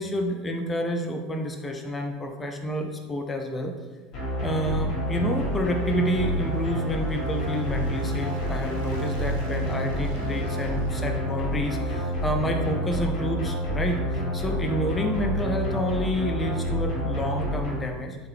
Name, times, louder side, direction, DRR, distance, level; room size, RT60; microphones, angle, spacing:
voice 1, 0.0-3.7 4.4-18.2, equal, 20° left, 4 dB, 0.4 m, -29 dB
sound 1, 4.1-17.7, equal, 55° left, 1.3 m, -28 dB
sound 2, 4.9-13.0, right 3 dB, 85° right, 0.6 m, -42 dB
3.4 x 2.1 x 3.2 m, 1.3 s
hypercardioid pair, 95°, 0 cm